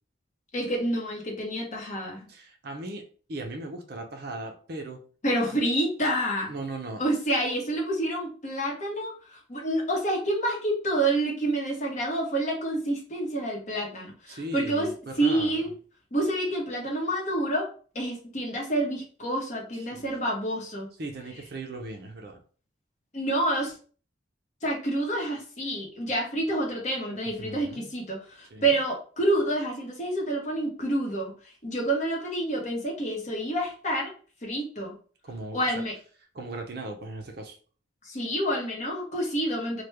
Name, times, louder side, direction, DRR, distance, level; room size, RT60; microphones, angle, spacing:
voice 1, 0.5-2.3 5.2-6.5 7.0-14.9 15.2-15.7 16.1-17.7 17.9-20.9 23.1-23.7 24.6-34.1 34.4-34.9 35.5-35.9 38.0-39.8, right 1 dB, 40° left, -1 dB, 0.9 m, -28 dB
voice 2, 2.3-5.0 5.4-5.6 6.5-7.0 14.3-15.6 19.9-20.0 21.0-22.4 27.4-27.9 28.5-28.8 35.2-35.8 36.3-37.6, right 2 dB, 55° right, 3 dB, 0.6 m, -38 dB
3.2 x 2.2 x 3.3 m, 0.41 s
head